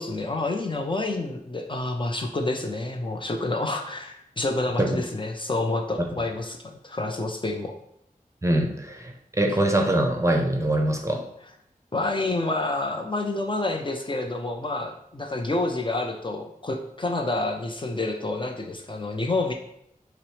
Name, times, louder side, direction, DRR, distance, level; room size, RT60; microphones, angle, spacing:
voice 1, 0.0-7.7 11.9-19.5, left 2 dB, 35° left, 3 dB, 0.5 m, -28 dB
voice 2, 8.4-9.1 9.4-11.2, right 1 dB, 20° right, 2 dB, 0.6 m, -23 dB
5.8 x 2.0 x 3.1 m, 0.74 s
wide cardioid pair, 55°, 15 cm